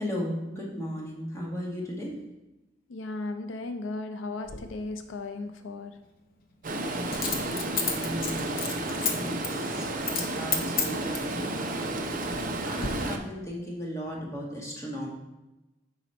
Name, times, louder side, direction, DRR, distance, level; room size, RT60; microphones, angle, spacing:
voice 1, 0.0-2.1 7.9-11.5 12.6-15.1, equal, 15° left, -3 dB, 1.2 m, -36 dB
voice 2, 2.9-6.0, left 2 dB, 85° left, 8 dB, 0.4 m, -36 dB
Coin (dropping), 4.4-4.6 7.1-9.1 9.4-9.6 10.0-10.3 10.5-11.3 11.9-12.5 12.8-12.9, left 5 dB, 50° left, 0.7 m, -30 dB
Stream, 6.6-13.2, right 2 dB, 45° right, 0.6 m, -32 dB
5.6 x 4.0 x 4.2 m, 1.0 s
head